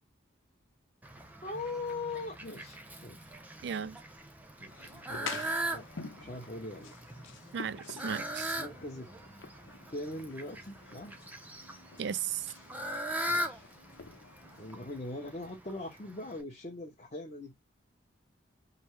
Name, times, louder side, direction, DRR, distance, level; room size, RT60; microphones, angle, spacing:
Fowl, 1.0-16.4, right 1 dB, 10° right, 0.7 m, -41 dB
voice 1, 1.4-3.3 4.6-5.9 6.2-6.9 7.2-7.4 8.6-9.1 9.9-11.2 13.3-13.7 14.6-17.7, left 2 dB, 35° left, 1.0 m, -41 dB
voice 2, 3.6-4.0 7.5-8.6 12.0-12.5, right 8 dB, 60° right, 0.3 m, -35 dB
sound 1, 4.7-14.7, left 5 dB, 80° left, 0.8 m, -48 dB
5.3 x 2.1 x 4.6 m
head